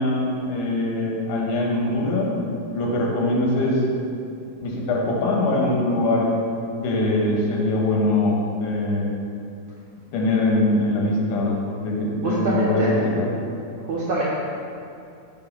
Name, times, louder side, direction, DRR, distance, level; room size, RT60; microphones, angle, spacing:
voice 1, 0.0-2.3 2.7-3.8 4.6-6.3 6.8-9.1 10.1-13.3, left 2 dB, 85° left, -1 dB, 2.4 m, -22 dB
voice 2, 12.2-12.9 13.9-14.2, right 2 dB, 75° right, -6 dB, 1.4 m, -24 dB
6.0 x 3.6 x 5.8 m, 2.5 s
omnidirectional pair, 3.5 m